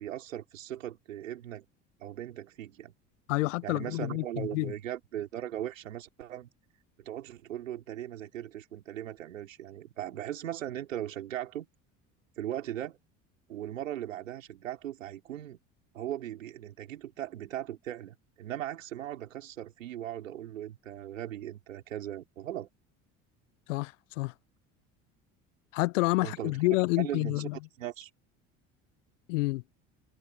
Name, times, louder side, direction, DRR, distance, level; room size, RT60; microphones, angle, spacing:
voice 1, 0.0-1.6 2.0-2.9 3.6-6.5 7.0-11.7 12.4-13.0 13.5-15.6 15.9-22.7 26.2-26.6 27.0-27.5 27.8-28.1, right 12 dB, 85° right, 4.1 m, -38 dB
voice 2, 3.3-4.7 23.7-24.3 25.7-27.6 29.3-29.6, left 23 dB, 75° left, 0.6 m, -29 dB
hypercardioid pair, 70°, 38 cm